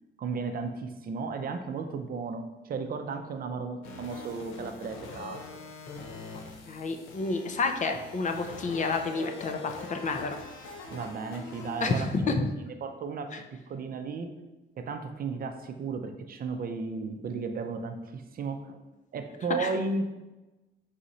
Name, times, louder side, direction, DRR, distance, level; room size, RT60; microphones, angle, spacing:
voice 1, 0.2-5.4 10.9-12.4 12.6-13.4 13.7-14.3 14.8-18.8 19.1-20.0, right 4 dB, 50° right, 6 dB, 0.5 m, -34 dB
sound 1, 3.8-12.1, left 3 dB, 80° left, 0.6 m, -44 dB
voice 2, 6.7-10.4 11.8-12.5 13.3-13.4 19.6-19.7, left 3 dB, 40° left, 6 dB, 0.5 m, -29 dB
4.1 x 2.5 x 4.1 m, 1.1 s
cardioid pair, 90°, 20 cm